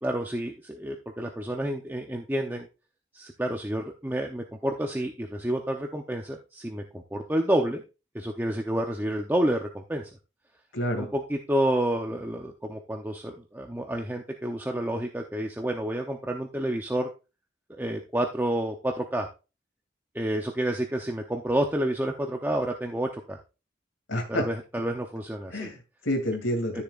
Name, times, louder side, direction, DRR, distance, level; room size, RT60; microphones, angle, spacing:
voice 1, 0.0-2.7 3.1-7.8 8.1-10.1 10.9-17.1 17.7-19.3 20.1-23.4 24.3-25.7 26.7-26.8, right 1 dB, 10° right, 2 dB, 0.7 m, -29 dB
voice 2, 10.7-11.1 24.1-24.5 25.5-26.8, equal, 80° left, 5 dB, 2.6 m, -29 dB
13.5 x 7.0 x 2.5 m, 0.30 s
head